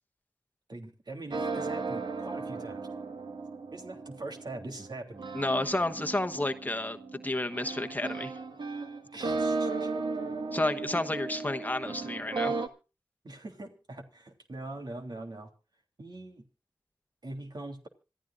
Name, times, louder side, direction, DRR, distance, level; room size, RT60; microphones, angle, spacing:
voice 1, 0.7-2.9 3.7-5.2 9.1-9.9 13.2-15.5 16.0-16.4 17.2-17.9, right 2 dB, 60° right, 3 dB, 3.3 m, -42 dB
sound 1, 1.3-12.7, right 3 dB, 80° right, 1.6 m, -35 dB
voice 2, 5.3-8.3 10.5-12.6, left 2 dB, 20° left, 6 dB, 1.2 m, -31 dB
26.5 x 14.5 x 2.5 m, 0.33 s
wide cardioid pair, 70°, 8 cm